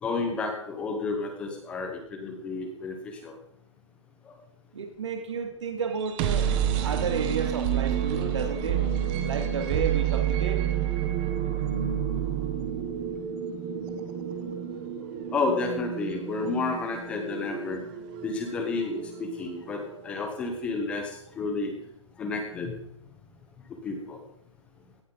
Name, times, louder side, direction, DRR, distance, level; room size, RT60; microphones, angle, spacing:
voice 1, 0.0-3.3 4.3-4.4 15.3-17.8 18.2-21.7 22.2-22.8 23.8-24.2, left 3 dB, 5° left, 4 dB, 0.9 m, -31 dB
voice 2, 4.7-6.5 6.8-8.8 9.2-10.6, right 5 dB, 70° right, 4 dB, 2.2 m, -31 dB
sound 1, 5.9-19.7, right 9 dB, 20° right, 0.9 m, -29 dB
17.0 x 11.5 x 3.9 m, 0.76 s
hypercardioid pair, 175°, 16 cm